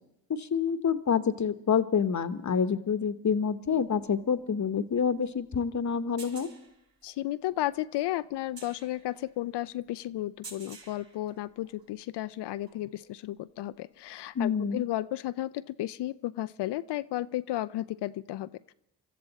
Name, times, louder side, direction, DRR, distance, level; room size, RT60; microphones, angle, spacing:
voice 1, 0.3-6.5 14.3-14.8, left 6 dB, 45° left, 12 dB, 1.0 m, -27 dB
sound 1, 3.8-12.0 12.5-13.3 14.6-14.7, right 3 dB, 60° right, 5.8 m, -52 dB
voice 2, 7.0-18.7, left 14 dB, 75° left, 15 dB, 0.5 m, -33 dB
24.5 x 13.5 x 4.1 m, 0.84 s
supercardioid pair, 50°, 42 cm